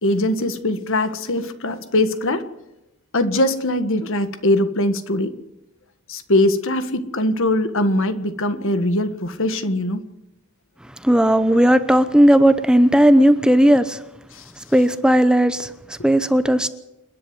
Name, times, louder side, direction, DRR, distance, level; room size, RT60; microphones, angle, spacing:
voice 1, 0.0-2.4 3.1-5.3 6.1-10.0 14.3-14.4, left 1 dB, 60° left, 1.7 m, -21 dB
voice 2, 11.0-14.0 14.7-16.7, equal, 5° right, 0.8 m, -15 dB
28.5 x 10.5 x 9.5 m
head